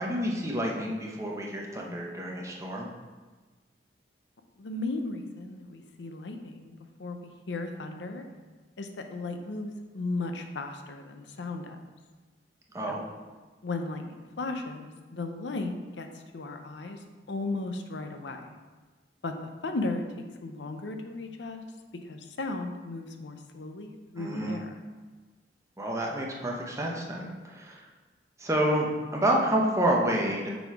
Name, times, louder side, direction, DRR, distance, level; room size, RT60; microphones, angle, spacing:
voice 1, 0.0-2.9 12.7-13.1 24.2-24.6 25.8-27.8 28.4-30.5, right 1 dB, 15° right, -1 dB, 0.8 m, -29 dB
voice 2, 4.6-6.7 7.0-7.2 7.5-8.2 8.8-11.8 12.9-13.0 13.6-17.0 17.3-18.5 19.2-19.4 19.6-20.0 20.4-21.6 22.0-24.8, left 2 dB, 75° left, 6 dB, 0.6 m, -35 dB
6.7 x 4.1 x 4.7 m, 1.3 s
head